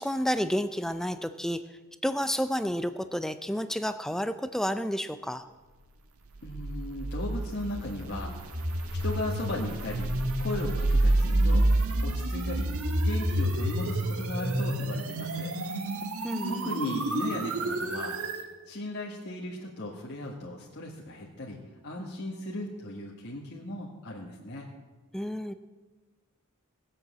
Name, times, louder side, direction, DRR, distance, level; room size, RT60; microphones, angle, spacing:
voice 1, 0.0-1.6 2.0-5.5 16.2-16.7 25.1-25.5, equal, ahead, 10 dB, 0.5 m, -30 dB
sound 1, 6.3-18.5, right 1 dB, 80° right, 1.5 m, -28 dB
voice 2, 6.4-8.4 8.9-11.7 12.0-12.8 13.0-15.6 16.4-18.2 18.7-24.7, left 1 dB, 50° left, -4 dB, 1.8 m, -36 dB
19.5 x 7.6 x 7.5 m, 1.2 s
head